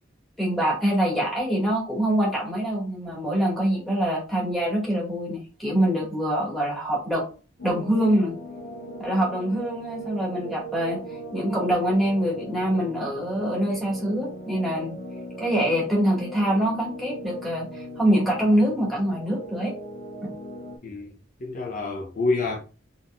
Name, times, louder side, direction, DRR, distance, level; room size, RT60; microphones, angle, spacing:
voice 1, 0.4-7.2 7.6-8.4 9.0-11.0 11.3-15.0 15.4-19.7 20.2-20.3, right 1 dB, ahead, 2.0 m, -24 dB
sound 1, 7.6-20.8, right 1 dB, 90° left, 1.4 m, -39 dB
voice 2, 20.8-22.6, left 3 dB, 50° left, 0.7 m, -28 dB
4.1 x 3.7 x 2.5 m
head